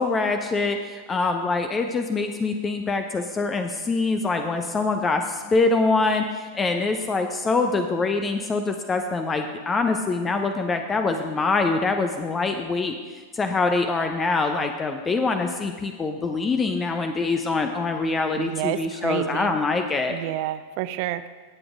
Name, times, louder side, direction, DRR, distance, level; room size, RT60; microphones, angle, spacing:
voice 1, 0.0-12.9 13.3-20.2, left 3 dB, 20° left, 6 dB, 0.8 m, -24 dB
voice 2, 18.3-19.5 20.1-21.3, right 14 dB, 45° right, 13 dB, 0.5 m, -29 dB
18.0 x 7.8 x 3.8 m, 1.5 s
figure-of-eight pair, 90°, 0 cm